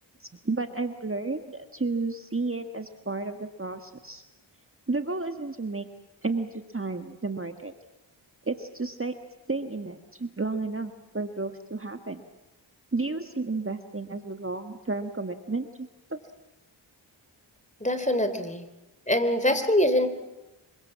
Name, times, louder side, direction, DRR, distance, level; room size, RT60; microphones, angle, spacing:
voice 1, 0.2-4.2 4.9-5.9 6.2-7.7 8.4-9.1 9.5-12.3 12.9-16.2, right 3 dB, 25° right, 7 dB, 1.5 m, -32 dB
voice 2, 17.8-18.6 19.1-20.1, left 1 dB, 15° left, 10 dB, 3.3 m, -23 dB
25.5 x 24.0 x 7.5 m, 1.0 s
cardioid pair, 40°, 48 cm